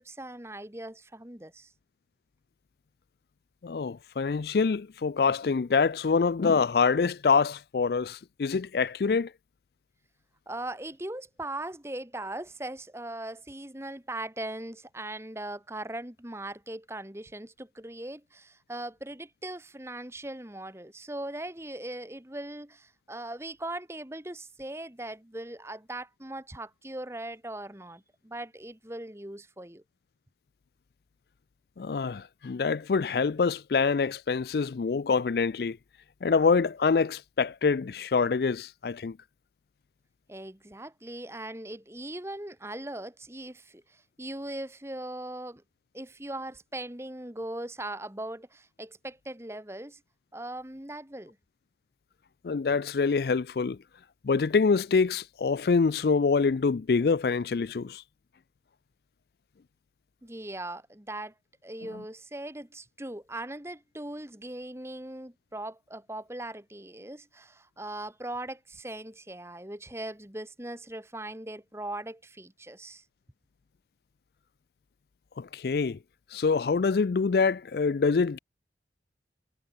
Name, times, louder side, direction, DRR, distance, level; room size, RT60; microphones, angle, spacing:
voice 1, 0.0-1.7 10.5-29.8 40.3-45.6 45.9-50.0 50.3-51.4 60.2-61.3 61.6-73.0, right 1 dB, 15° right, 1.7 m, -39 dB
voice 2, 3.6-9.3 31.8-35.8 36.2-39.2 52.4-53.8 54.2-58.0 75.4-76.0 76.3-78.4, left 5 dB, 60° left, 0.4 m, -25 dB
head